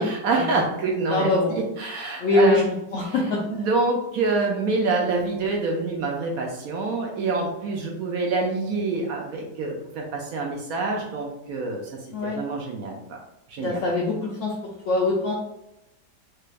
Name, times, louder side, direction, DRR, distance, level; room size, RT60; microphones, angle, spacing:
voice 1, 0.0-2.6 3.0-3.1 3.5-13.2 13.5-13.8, right 3 dB, 70° right, 1 dB, 0.9 m, -26 dB
voice 2, 1.1-1.5 2.2-2.6 2.9-3.4 12.1-12.4 13.6-14.1 14.4-14.5 14.9-15.3, left 2 dB, 70° left, -3 dB, 0.7 m, -22 dB
3.4 x 2.4 x 3.1 m, 0.87 s
omnidirectional pair, 1.8 m